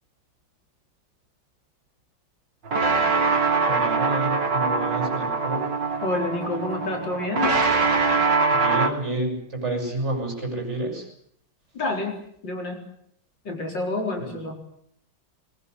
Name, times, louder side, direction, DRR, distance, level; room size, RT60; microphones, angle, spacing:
sound 1, 2.7-8.9, right 4 dB, 60° right, 3.4 m, -23 dB
voice 1, 3.6-5.8 8.5-11.1 14.2-14.3, right 1 dB, 35° right, 2 dB, 7.9 m, -30 dB
voice 2, 6.0-7.6 11.7-12.8 13.4-14.6, left 2 dB, 65° left, 3 dB, 4.9 m, -28 dB
21.0 x 21.0 x 9.7 m, 0.69 s
omnidirectional pair, 2.2 m